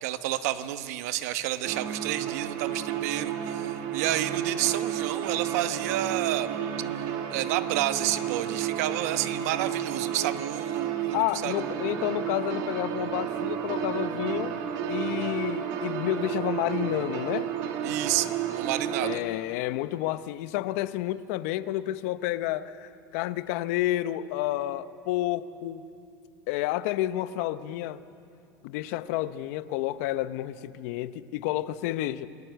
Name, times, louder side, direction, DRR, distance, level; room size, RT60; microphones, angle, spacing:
voice 1, 0.0-6.5 7.3-11.5 17.8-19.2, right 13 dB, 80° right, 1.1 m, -30 dB
sound 1, 1.6-19.2, right 9 dB, 65° right, 2.2 m, -32 dB
voice 2, 11.1-14.6 14.9-17.5 19.0-25.8 26.5-28.0 28.6-32.3, left 14 dB, 75° left, 0.8 m, -30 dB
29.0 x 18.5 x 8.0 m
supercardioid pair, 125°, 8 cm